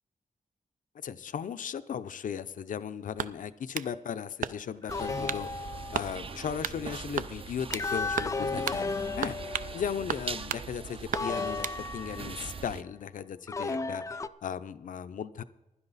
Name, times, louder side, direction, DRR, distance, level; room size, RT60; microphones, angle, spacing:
voice 1, 1.0-5.6 5.9-11.7 11.9-15.4, left 8 dB, 75° left, 12 dB, 0.6 m, -37 dB
sound 1, 3.2-3.9 4.4-4.8 5.3-5.5 5.9-6.1 6.6-6.8 7.2-7.9 8.2-8.4 8.7-8.8 9.2-9.7 10.1-10.7 11.1-11.8, right 8 dB, 90° right, 0.5 m, -34 dB
sound 2, 4.9-6.3 7.7-10.1 11.1-12.6 13.5-14.3, left 4 dB, 25° left, 0.4 m, -34 dB
sound 3, 4.9-12.8, right 5 dB, 45° right, 0.6 m, -42 dB
15.5 x 11.5 x 4.0 m, 0.97 s
wide cardioid pair, 165°, 14 cm